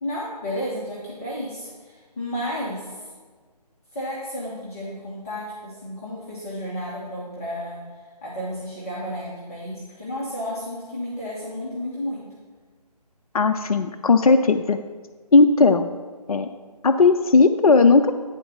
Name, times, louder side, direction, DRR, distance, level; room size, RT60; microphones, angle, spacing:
voice 1, 0.0-3.1 3.9-12.3, equal, 20° left, -7 dB, 1.0 m, -32 dB
voice 2, 13.3-14.8 15.3-15.9 16.3-16.5 16.8-18.1, left 4 dB, 60° left, 8 dB, 0.4 m, -16 dB
9.2 x 3.9 x 5.4 m, 1.5 s
figure-of-eight pair, 150°, 21 cm